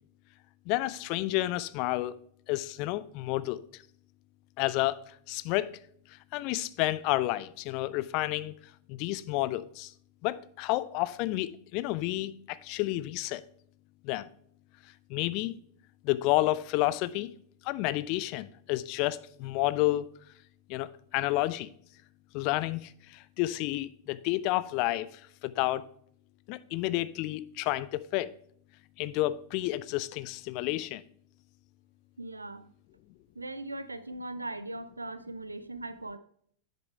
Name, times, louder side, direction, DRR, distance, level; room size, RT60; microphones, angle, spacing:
voice 1, 0.7-2.2 2.5-3.6 4.6-5.7 6.3-8.5 8.9-9.9 10.2-13.4 14.0-14.3 15.1-15.5 16.0-17.3 17.6-20.1 20.7-21.7 22.3-25.9 26.5-28.3 29.0-31.0, left 17 dB, 45° left, 0.4 m, -30 dB
voice 2, 32.2-32.7 33.3-36.2, right 2 dB, 80° right, 0.5 m, -39 dB
7.9 x 6.8 x 3.1 m
figure-of-eight pair, 90°, 0 cm